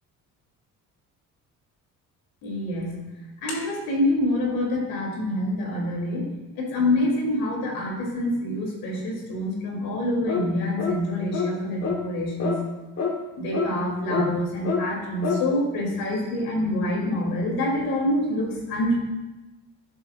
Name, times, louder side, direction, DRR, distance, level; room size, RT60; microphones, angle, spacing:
voice 1, 2.4-2.9 3.4-6.2 6.6-12.6 13.4-18.9, left 1 dB, 90° left, -1 dB, 3.0 m, -26 dB
sound 1, 10.3-10.5 10.8-11.0 11.3-11.5 11.8-12.0 12.4-12.6 13.0-13.1 13.5-13.7 14.1-14.3 14.6-14.8 15.2-15.4, left 5 dB, 45° left, 1.5 m, -26 dB
11.0 x 10.0 x 2.5 m, 1.1 s
cardioid pair, 125°, 35 cm